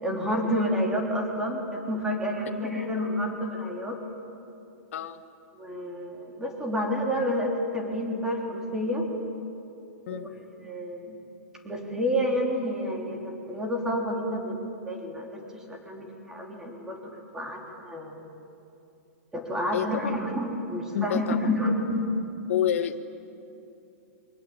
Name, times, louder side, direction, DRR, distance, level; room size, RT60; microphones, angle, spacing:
voice 1, 0.0-4.0 5.6-9.1 10.1-10.3 10.6-11.2 11.6-18.2 19.3-22.1, equal, 5° right, 0 dB, 3.5 m, -29 dB
voice 2, 19.7-20.1 20.9-21.4 22.5-23.0, left 10 dB, 60° left, 6 dB, 1.4 m, -28 dB
27.5 x 25.0 x 8.7 m, 2.7 s
hypercardioid pair, 170°, 8 cm